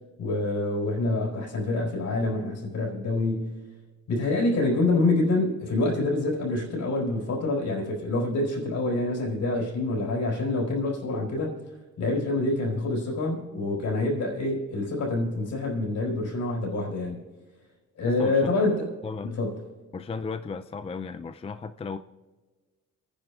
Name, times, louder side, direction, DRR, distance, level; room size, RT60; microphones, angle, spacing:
voice 1, 0.2-3.6 4.1-11.5 12.0-17.2 18.0-18.9 19.4-19.6, left 2 dB, 65° left, -1 dB, 4.8 m, -26 dB
voice 2, 18.0-18.5 19.0-19.4 19.9-22.0, left 5 dB, 20° left, 9 dB, 0.4 m, -35 dB
29.5 x 10.0 x 2.5 m, 1.3 s
cardioid pair, 90°, 30 cm